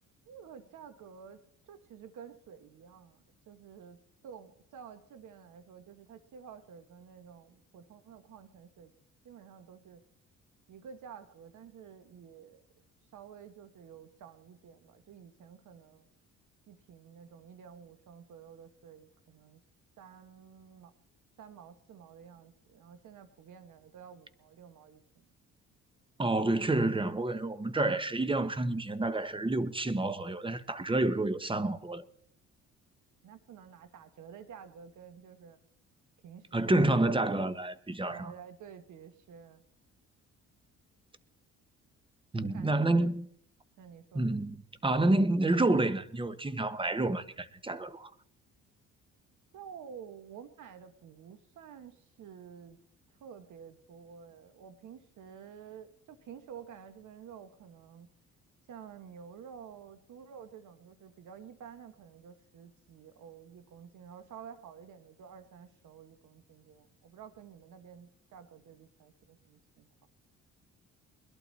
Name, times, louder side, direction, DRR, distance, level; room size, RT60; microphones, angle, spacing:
voice 1, 0.2-1.4 1.7-3.2 3.5-8.9 9.2-10.0 10.7-12.6 13.1-16.1 16.7-19.6 20.0-20.9 21.4-25.3 33.2-35.6 36.2-37.5 37.9-39.6 42.4-43.1 43.8-44.3 49.5-52.8 53.2-58.1 58.7-69.9, right 7 dB, 70° right, 1.5 m, -51 dB
voice 2, 26.2-32.0 36.5-38.3 42.3-43.3 44.1-48.1, right 2 dB, 15° right, 1.0 m, -29 dB
21.5 x 12.0 x 4.1 m
cardioid pair, 80°, 32 cm